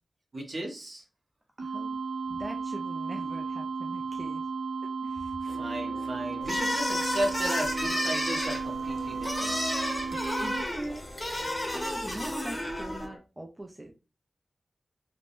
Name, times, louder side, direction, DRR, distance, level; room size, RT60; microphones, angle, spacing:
voice 1, 0.3-1.0 5.4-9.6, right 1 dB, 50° right, 1 dB, 0.9 m, -35 dB
voice 2, 1.6-1.9 2.3-4.5 4.8-5.4 10.1-13.9, right 1 dB, 20° right, 1 dB, 0.4 m, -42 dB
sound 1, 1.6-10.6, right 4 dB, 75° right, 0.9 m, -34 dB
sound 2, 5.5-13.2, left 2 dB, 80° left, 0.6 m, -45 dB
sound 3, 6.4-13.1, left 1 dB, 15° left, 0.8 m, -32 dB
3.4 x 2.1 x 2.4 m, 0.30 s
wide cardioid pair, 105°, 0 cm